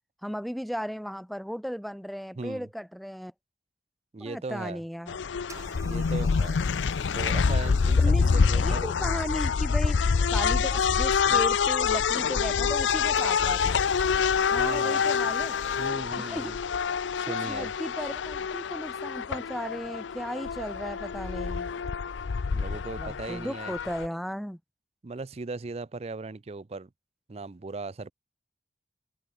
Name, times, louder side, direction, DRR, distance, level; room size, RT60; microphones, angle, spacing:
voice 1, 0.2-3.3 4.2-5.2 8.0-13.8 14.5-15.6 16.2-16.5 17.3-21.7 23.0-24.6, equal, ahead, 0.7 m, -36 dB
voice 2, 2.4-2.7 4.1-4.8 5.8-6.6 7.1-8.9 14.5-15.0 15.8-16.6 17.2-17.7 22.5-23.7 25.0-26.9 27.3-28.1, right 3 dB, 35° right, 0.5 m, -38 dB
sound 1, 5.1-24.1, left 5 dB, 90° left, 0.5 m, -26 dB
sound 2, 5.5-9.4 13.2-15.9, right 3 dB, 20° right, 2.2 m, -51 dB
open air
head